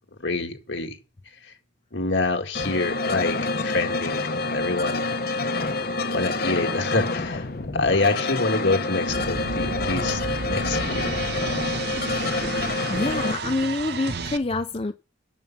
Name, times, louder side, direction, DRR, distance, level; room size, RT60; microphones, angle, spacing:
voice 1, 0.2-1.0 1.4-1.5 1.9-3.4 3.6-4.2 4.5-5.0 5.4-5.5 6.1-7.5 7.7-11.2, left 3 dB, 70° left, 1.9 m, -26 dB
sound 1, 2.5-13.3, left 3 dB, 50° left, 1.0 m, -27 dB
sound 2, 9.1-14.4, right 4 dB, 55° right, 0.8 m, -32 dB
voice 2, 12.9-14.9, left 2 dB, 30° left, 0.5 m, -26 dB
8.8 x 7.1 x 7.2 m
head